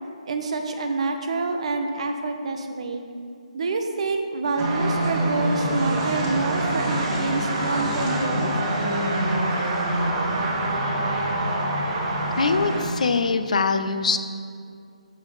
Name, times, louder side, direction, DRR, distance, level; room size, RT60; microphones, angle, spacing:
voice 1, 0.2-3.1 3.5-8.5, right 3 dB, 55° right, 5 dB, 0.7 m, -27 dB
sound 1, 4.6-12.9, right 1 dB, 30° right, 1.0 m, -25 dB
voice 2, 12.4-14.2, left 4 dB, 70° left, 10 dB, 0.4 m, -22 dB
7.0 x 5.1 x 4.0 m, 2.3 s
figure-of-eight pair, 150°, 4 cm